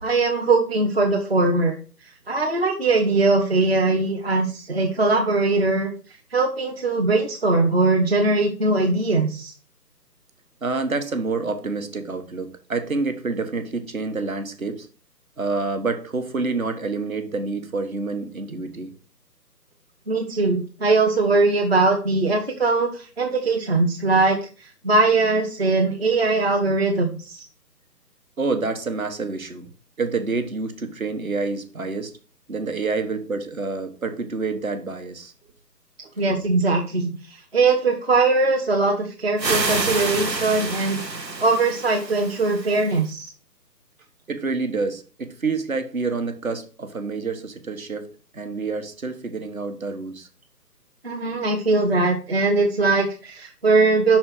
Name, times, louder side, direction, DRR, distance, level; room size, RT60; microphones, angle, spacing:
voice 1, 0.0-1.8 2.3-5.9 6.3-9.5 20.1-27.5 36.2-43.3 51.0-54.2, right 3 dB, 40° right, 2 dB, 0.8 m, -21 dB
voice 2, 10.6-14.9 15.4-18.9 28.4-29.7 30.0-32.1 32.5-35.3 36.3-36.4 44.3-50.3, right 3 dB, 55° right, 8 dB, 1.3 m, -28 dB
sound 1, 39.4-43.1, right 3 dB, 90° right, 1.3 m, -28 dB
5.8 x 4.2 x 6.0 m, 0.37 s
figure-of-eight pair, 155°, 49 cm